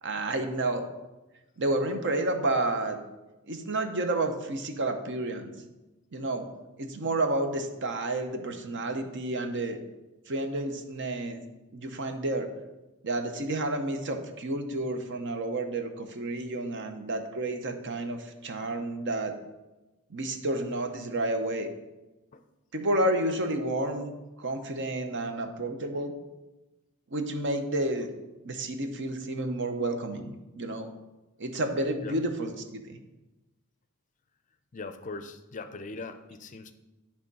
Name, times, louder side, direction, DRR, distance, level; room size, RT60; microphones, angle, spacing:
voice 1, 0.0-0.8 1.6-3.0 3.5-5.5 6.1-6.5 6.8-9.8 10.3-11.4 11.7-12.5 13.0-19.3 20.1-21.7 22.7-24.1 24.4-26.1 27.1-28.1 28.4-30.9 31.4-33.0, right 2 dB, 55° right, 7 dB, 0.9 m, -30 dB
voice 2, 34.7-36.7, left 3 dB, 35° left, 9 dB, 0.5 m, -40 dB
10.0 x 3.6 x 5.4 m, 1.1 s
head